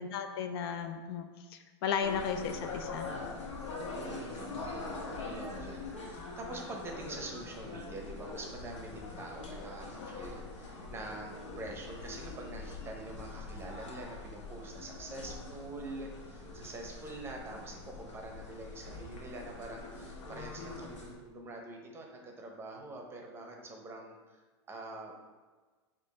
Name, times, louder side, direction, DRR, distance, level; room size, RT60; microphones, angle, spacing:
voice 1, 0.0-3.1, left 7 dB, 55° left, 7 dB, 0.4 m, -35 dB
sound 1, 2.0-21.1, left 3 dB, 80° left, 1.1 m, -43 dB
voice 2, 3.9-24.4 24.7-25.2, right 2 dB, 15° right, 1 dB, 0.7 m, -45 dB
5.0 x 2.5 x 4.1 m, 1.3 s
hypercardioid pair, 130°, 15 cm